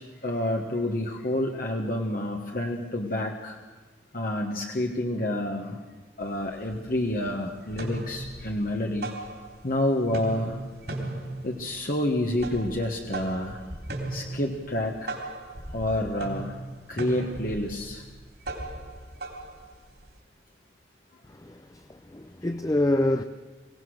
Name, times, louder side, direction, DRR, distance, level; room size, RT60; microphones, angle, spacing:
voice 1, 0.2-3.6 4.1-5.8 6.2-9.1 9.6-10.6 11.4-13.6 14.1-15.0 15.7-16.6 16.9-18.0, left 1 dB, 50° left, 1.4 m, -28 dB
sound 1, 6.2-6.3 6.7-7.3 7.6-9.8 10.0-20.2, right 2 dB, 65° right, 3.7 m, -37 dB
voice 2, 21.3-23.2, left 1 dB, 20° left, 0.6 m, -27 dB
23.5 x 17.5 x 6.5 m
head